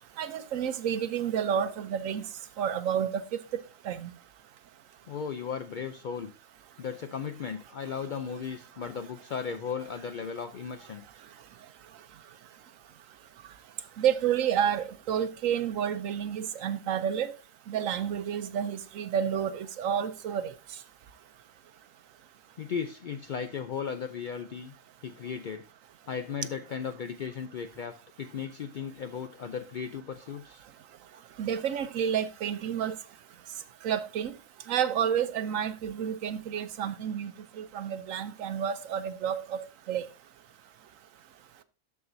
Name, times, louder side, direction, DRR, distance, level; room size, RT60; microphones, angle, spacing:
voice 1, 0.2-2.2 2.6-3.2 3.8-4.1 14.0-17.3 17.7-20.5 31.4-32.9 33.8-34.3 34.7-37.3 37.6-39.6 39.9-40.0, right 8 dB, 75° right, 1.0 m, -30 dB
voice 2, 5.1-6.3 6.8-11.0 22.6-24.7 25.0-25.6 26.1-30.6, left 6 dB, 70° left, 0.4 m, -36 dB
12.5 x 4.8 x 2.6 m
omnidirectional pair, 1.5 m